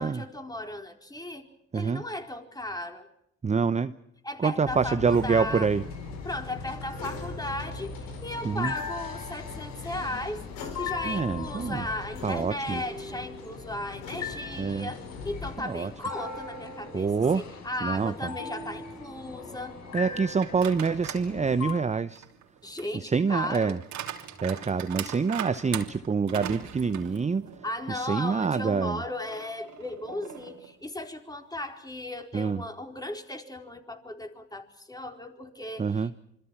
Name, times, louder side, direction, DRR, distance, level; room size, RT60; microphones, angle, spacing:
voice 1, 0.0-1.5 1.7-3.1 4.2-5.7 6.2-10.5 10.8-19.8 22.6-23.8 27.6-36.1, left 1 dB, 10° left, 4 dB, 4.3 m, -36 dB
voice 2, 3.4-3.9 4.4-5.8 8.4-8.7 11.0-11.9 12.2-12.8 14.6-14.9 15.6-15.9 16.9-17.4 17.8-18.3 19.9-22.2 23.0-23.8 24.4-27.5 27.9-29.0 32.3-32.6 35.8-36.1, right 5 dB, 20° right, 13 dB, 0.9 m, -26 dB
sound 1, 4.6-15.5, left 4 dB, 75° left, 4.7 m, -41 dB
sound 2, 5.0-21.7, left 5 dB, 50° left, 5.3 m, -41 dB
sound 3, 20.4-21.3 21.7-27.8 28.2-28.3 29.2-30.7, right 10 dB, 60° right, 3.1 m, -40 dB
27.0 x 25.0 x 5.9 m, 0.76 s
hypercardioid pair, 55°, 33 cm